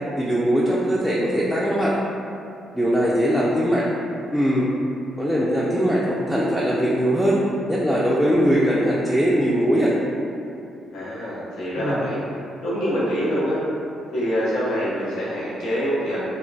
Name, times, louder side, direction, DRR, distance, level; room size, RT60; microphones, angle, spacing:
voice 1, 0.2-1.9 2.7-3.9 4.3-4.7 5.2-7.4 7.7-9.9 11.8-12.0, equal, 5° left, -6 dB, 0.3 m, -21 dB
voice 2, 10.9-12.2 12.6-13.6 14.1-16.2, equal, 80° left, -9 dB, 0.7 m, -25 dB
2.2 x 2.1 x 3.8 m, 2.6 s
cardioid pair, 90°, 0 cm